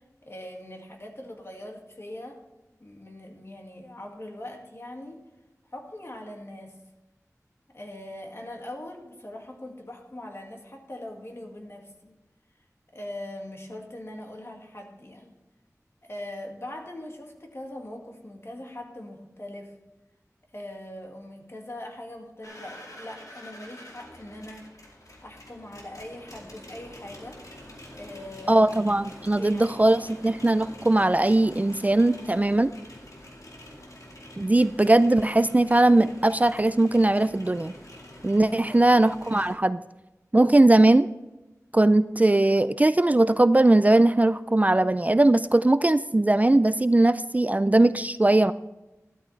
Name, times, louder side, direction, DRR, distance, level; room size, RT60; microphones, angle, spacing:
voice 1, 0.0-2.4 2.8-5.2 5.7-6.8 7.7-12.2 12.9-15.4 16.0-19.7 20.5-24.7 25.2-27.4 27.9-28.7 29.4-30.1 38.4-38.8, left 1 dB, 45° left, 1 dB, 2.0 m, -41 dB
sound 1, 22.4-39.5, left 1 dB, 75° left, 2.5 m, -46 dB
voice 2, 28.5-32.7 34.4-37.7 38.2-39.8 40.3-41.1 41.7-48.5, right 2 dB, 25° right, 14 dB, 0.3 m, -20 dB
13.0 x 12.5 x 3.3 m, 1.1 s
wide cardioid pair, 55°, 6 cm